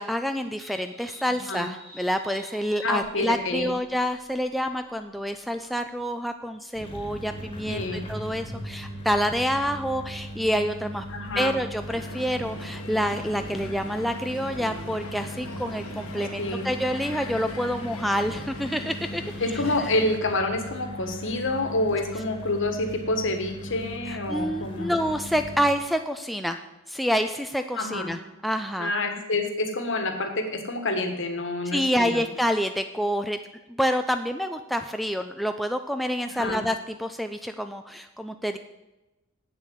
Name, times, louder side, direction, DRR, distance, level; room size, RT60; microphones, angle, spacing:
voice 1, 0.0-11.1 11.4-19.2 24.1-26.6 26.9-28.9 31.7-33.4 33.7-38.6, equal, ahead, 6 dB, 0.3 m, -27 dB
sound 1, 0.6-11.2, left 1 dB, 80° right, 3.2 m, -47 dB
voice 2, 2.8-3.7 7.7-8.0 11.1-11.5 16.4-16.7 19.4-24.9 27.7-28.1 28.8-32.3 36.2-36.6, left 2 dB, 60° left, 6 dB, 1.5 m, -28 dB
sound 2, 6.7-25.7, equal, 25° left, 1.7 m, -39 dB
Crowd, 11.9-20.2, left 1 dB, 90° left, 1.3 m, -40 dB
8.4 x 7.2 x 7.7 m, 1.0 s
head